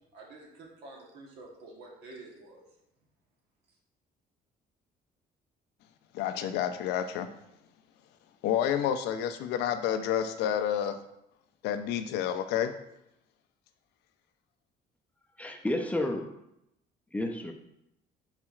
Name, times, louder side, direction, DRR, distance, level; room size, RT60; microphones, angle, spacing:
voice 1, 0.1-2.6, right 2 dB, 80° right, -1 dB, 1.1 m, -49 dB
voice 2, 6.1-7.3 8.4-11.0 11.6-12.7, left 9 dB, 85° left, 9 dB, 0.4 m, -29 dB
voice 3, 15.4-16.3 17.1-17.5, left 1 dB, 10° left, 3 dB, 0.4 m, -31 dB
4.4 x 4.0 x 2.3 m, 0.82 s
cardioid pair, 110°, 17 cm